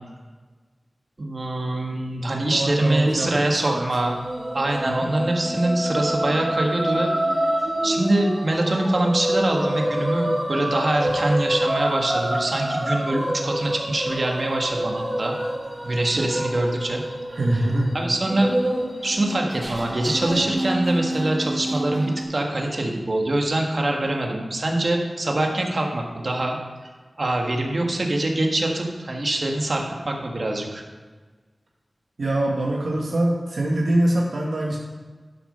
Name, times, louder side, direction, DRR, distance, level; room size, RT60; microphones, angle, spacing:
voice 1, 1.2-4.1 4.5-7.1 7.8-15.3 15.8-17.0 17.5-17.6 17.9-18.5 19.0-26.9 27.2-30.8, right 1 dB, 55° right, 1 dB, 1.7 m, -24 dB
voice 2, 2.5-3.3 3.6-3.9 4.9-5.1 17.3-17.9 32.2-34.8, right 1 dB, 80° right, -2 dB, 1.2 m, -23 dB
sound 1, 4.0-22.2, right 1 dB, 30° right, 3.4 m, -27 dB
11.5 x 6.5 x 5.5 m, 1.4 s
wide cardioid pair, 60°, 0 cm